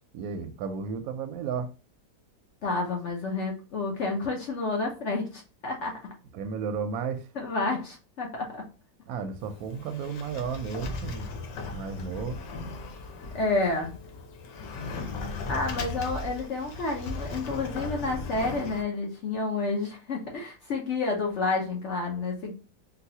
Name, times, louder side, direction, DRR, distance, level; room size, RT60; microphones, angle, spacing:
voice 1, 0.1-1.7 6.3-7.3 9.1-11.3 11.7-12.4, right 6 dB, 70° right, 0.9 m, -33 dB
voice 2, 2.6-6.0 7.4-8.7 13.3-13.9 15.5-22.5, left 3 dB, 60° left, 0.7 m, -30 dB
Sliding door, 9.4-18.8, left 3 dB, 85° left, 1.4 m, -37 dB
3.9 x 2.3 x 2.7 m
omnidirectional pair, 1.8 m